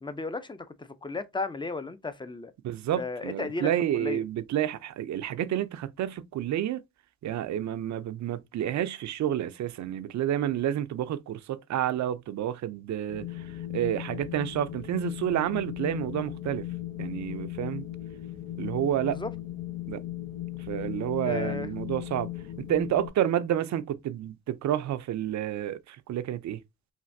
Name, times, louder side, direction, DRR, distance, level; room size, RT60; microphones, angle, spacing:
voice 1, 0.0-2.5 3.0-4.2 19.1-19.3 21.3-21.7, left 3 dB, 15° left, 0.4 m, -34 dB
voice 2, 2.6-6.8 7.2-13.3 13.7-16.7 17.0-17.9 18.6-19.2 19.9-20.0 20.7-22.3 22.6-26.6, right 11 dB, 55° right, 0.5 m, -29 dB
Wind, 13.1-23.1, left 14 dB, 80° left, 0.7 m, -37 dB
3.2 x 2.5 x 2.6 m
supercardioid pair, 60°, 34 cm